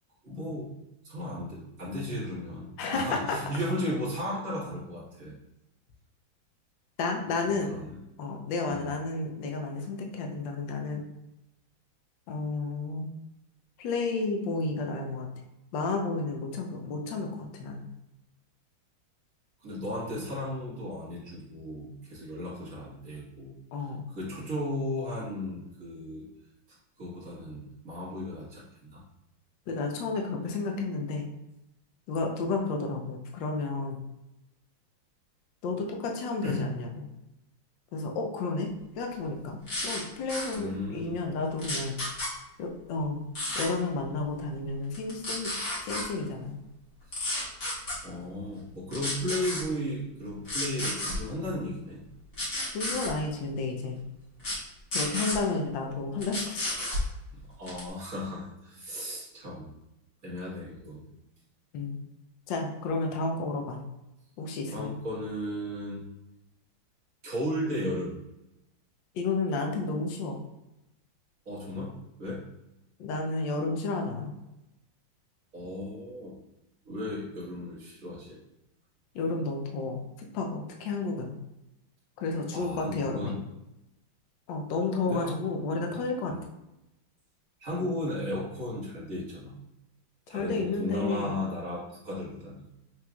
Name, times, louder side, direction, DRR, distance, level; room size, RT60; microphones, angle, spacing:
voice 1, 0.2-0.7 1.0-5.3 7.4-8.0 8.7-8.9 19.6-23.5 24.1-26.3 27.0-29.0 36.4-36.7 40.6-41.2 47.1-47.2 48.0-52.0 57.3-59.7 60.2-61.1 64.7-66.0 67.2-68.1 71.4-71.9 72.2-72.5 75.5-76.4 76.8-78.4 82.5-83.4 85.0-85.3 86.2-86.4 87.6-89.5 90.3-92.7, left 1 dB, 45° right, -7 dB, 1.5 m, -35 dB
voice 2, 2.8-3.4 7.0-7.7 8.2-11.0 12.3-13.1 13.8-15.3 15.7-17.8 23.7-24.1 29.7-31.3 32.1-34.0 35.6-37.1 37.9-42.0 42.6-43.2 43.5-45.5 45.8-46.6 52.7-54.0 54.9-57.0 61.7-62.0 62.5-63.8 64.4-65.0 69.1-70.4 73.0-74.3 79.1-81.3 82.2-83.4 84.5-86.3 90.3-91.4, left 3 dB, 70° left, 2 dB, 1.3 m, -31 dB
sound 1, 39.7-40.0 40.3-40.5 41.6-42.3 43.4-43.7 44.9-46.0 47.1-48.0 48.9-49.6 50.4-51.2 52.3-53.1 54.4-54.6 54.9-55.4 56.2-57.0 57.7-57.9, left 1 dB, 45° left, 1.8 m, -32 dB
5.9 x 3.3 x 2.2 m, 0.92 s
omnidirectional pair, 2.2 m